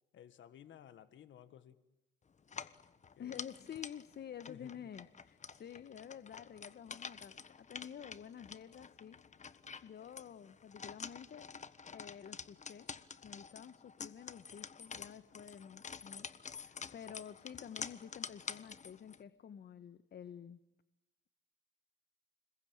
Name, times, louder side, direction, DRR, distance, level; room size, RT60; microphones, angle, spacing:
voice 1, 0.1-1.8 3.2-3.4 4.5-4.9, left 10 dB, 70° left, 12 dB, 1.7 m, -56 dB
sound 1, 2.4-19.2, left 6 dB, 35° left, 1.4 m, -49 dB
voice 2, 3.2-11.5 11.9-12.9 13.2-20.6, left 8 dB, 55° left, 12 dB, 1.4 m, -50 dB
30.0 x 22.0 x 8.9 m, 0.90 s
cardioid pair, 90°, 20 cm